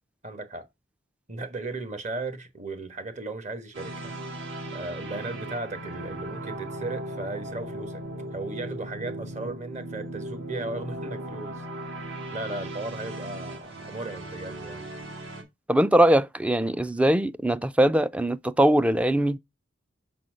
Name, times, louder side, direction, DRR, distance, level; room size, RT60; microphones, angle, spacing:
voice 1, 0.2-0.7 1.3-4.1 4.7-8.0 8.3-11.6 12.3-14.8, right 2 dB, 40° right, 1.4 m, -36 dB
sound 1, 3.7-15.4, right 1 dB, 70° right, 2.3 m, -37 dB
voice 2, 15.7-19.4, right 1 dB, 5° right, 0.3 m, -21 dB
6.3 x 4.3 x 6.3 m
head